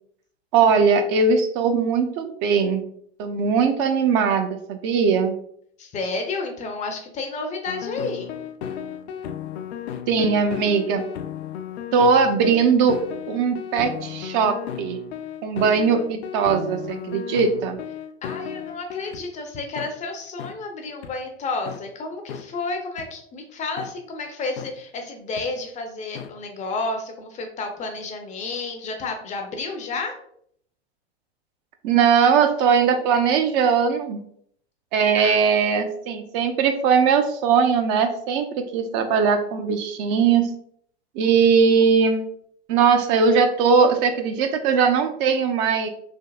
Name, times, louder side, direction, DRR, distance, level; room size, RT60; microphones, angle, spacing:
voice 1, 0.5-2.8 3.2-5.3 10.1-11.0 11.9-13.0 13.3-15.0 15.4-17.8 31.8-34.2 34.9-40.5 41.2-42.2 42.7-45.9, right 6 dB, 45° right, 7 dB, 0.4 m, -20 dB
voice 2, 5.8-8.3 18.2-30.1 35.2-35.4, left 3 dB, 20° left, 4 dB, 0.4 m, -31 dB
sound 1, 7.7-19.2 19.8-19.9 20.4-20.5 21.0-21.1 21.7-21.8 22.3-22.4 23.0-23.1 23.8-23.9 24.6-24.7 25.4-25.5 26.1-26.3, left 9 dB, 75° left, 0.5 m, -34 dB
3.4 x 2.7 x 2.3 m, 0.66 s
hypercardioid pair, 100°, 33 cm